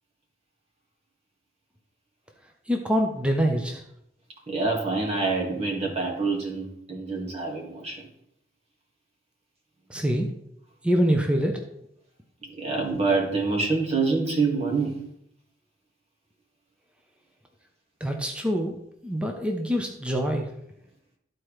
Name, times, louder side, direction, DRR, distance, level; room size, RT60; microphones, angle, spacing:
voice 1, 2.7-3.8 9.9-10.3 10.8-11.6 18.0-18.8 19.0-20.5, equal, 5° right, 2 dB, 0.8 m, -25 dB
voice 2, 4.5-8.0 12.4-15.0, right 3 dB, 35° right, 0 dB, 1.8 m, -26 dB
13.0 x 4.5 x 3.2 m, 0.75 s
head